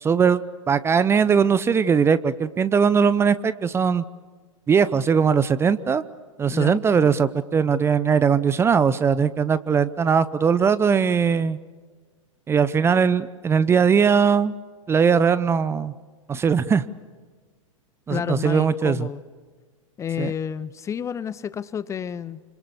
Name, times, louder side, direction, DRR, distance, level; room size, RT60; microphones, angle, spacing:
voice 1, 0.0-4.0 4.7-6.0 6.4-11.6 12.5-14.5 14.9-15.9 16.3-16.8 18.1-19.1 20.2-20.3, right 6 dB, 15° right, 16 dB, 0.8 m, -20 dB
voice 2, 6.5-6.8 18.1-19.2 20.0-22.4, left 8 dB, 15° left, 17 dB, 0.8 m, -30 dB
28.5 x 26.0 x 7.0 m, 1.4 s
figure-of-eight pair, 100°, 17 cm